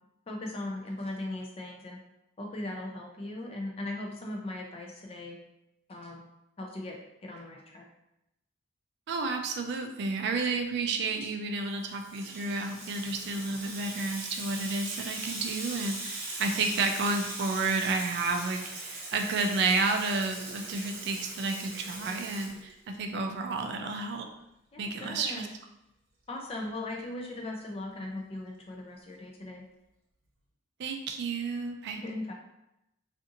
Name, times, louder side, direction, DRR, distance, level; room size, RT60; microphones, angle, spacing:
voice 1, 0.3-2.0 2.4-5.4 5.9-6.3 6.6-7.0 7.2-7.8 24.7-25.5 26.3-29.6 32.0-32.3, left 2 dB, 30° left, 0 dB, 0.4 m, -38 dB
voice 2, 9.1-24.2 24.8-25.5 30.8-32.0, right 3 dB, 60° right, 4 dB, 0.3 m, -31 dB
Water tap faucet / Sink (filling or washing), 11.7-23.1, right 2 dB, 85° right, 0.7 m, -40 dB
2.7 x 2.5 x 2.5 m, 0.86 s
head